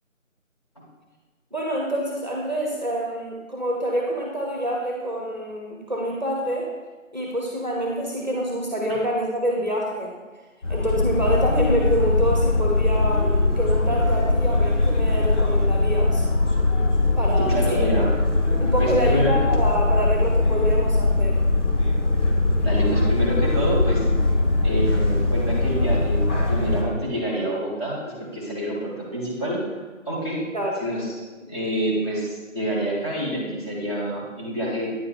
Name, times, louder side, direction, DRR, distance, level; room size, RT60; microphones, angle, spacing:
voice 1, 1.5-6.7 7.1-10.1 10.7-16.3 17.2-17.8 18.6-21.4 30.5-30.9 31.4-31.5, equal, 35° right, -1 dB, 0.8 m, -26 dB
sound 1, 10.6-26.8, left 2 dB, 60° left, 1.3 m, -21 dB
voice 2, 17.5-18.1 18.8-19.3 22.6-24.1 24.6-26.2 26.5-29.8 30.0-30.4 30.8-31.0 31.5-34.9, equal, 20° left, -8 dB, 1.5 m, -27 dB
9.3 x 4.7 x 2.5 m, 1.3 s
figure-of-eight pair, 170°, 40 cm